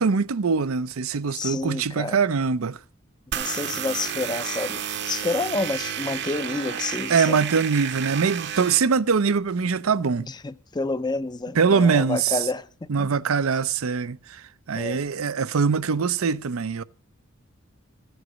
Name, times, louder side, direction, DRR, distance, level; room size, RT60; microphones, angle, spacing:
voice 1, 0.0-2.8 7.1-10.3 11.5-12.4 12.9-16.8, right 5 dB, 80° right, 0.6 m, -23 dB
voice 2, 1.3-2.2 3.4-7.4 10.3-12.7 13.0-13.1 14.7-15.0, left 3 dB, 20° left, 0.5 m, -29 dB
sound 1, 3.3-8.8, right 8 dB, 55° right, 0.8 m, -31 dB
15.0 x 8.0 x 6.1 m
head